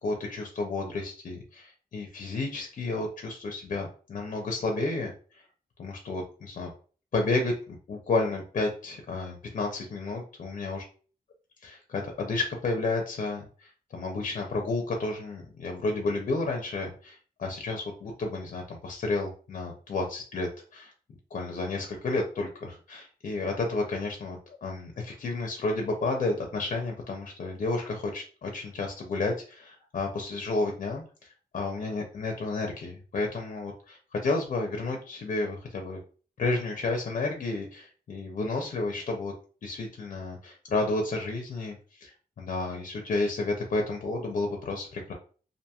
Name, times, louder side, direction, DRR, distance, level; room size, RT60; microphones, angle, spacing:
voice 1, 0.0-5.4 5.8-6.7 7.1-10.8 11.6-20.9 21.3-36.0 36.4-39.3 39.6-45.1, left 3 dB, 55° left, 2 dB, 0.5 m, -31 dB
2.8 x 2.5 x 2.2 m, 0.40 s
wide cardioid pair, 175°, 16 cm